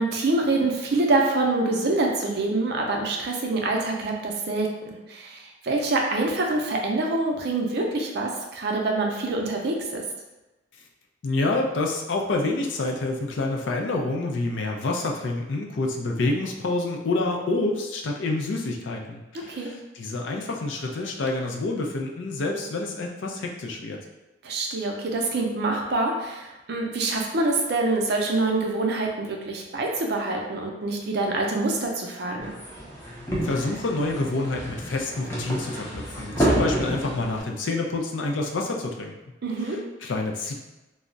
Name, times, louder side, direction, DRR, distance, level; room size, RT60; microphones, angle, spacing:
voice 1, 0.0-10.0 19.3-19.7 24.4-32.5 39.4-39.8, right 2 dB, 60° right, 1 dB, 0.5 m, -26 dB
voice 2, 11.2-24.0 33.4-39.1 39.7-40.5, left 2 dB, 75° left, 1 dB, 0.4 m, -28 dB
sound 1, 32.4-37.4, equal, 15° left, 0.6 m, -29 dB
2.3 x 2.0 x 3.8 m, 1.1 s
head